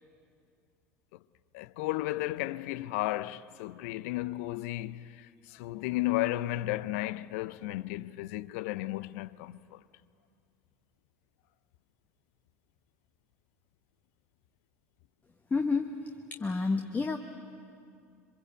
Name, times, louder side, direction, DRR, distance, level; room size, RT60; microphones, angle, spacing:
voice 1, 1.5-9.8, left 16 dB, 60° left, 0.6 m, -34 dB
voice 2, 15.5-15.9 16.4-17.2, left 4 dB, 20° left, 1.2 m, -29 dB
27.0 x 24.0 x 8.2 m
figure-of-eight pair, 70°, 9 cm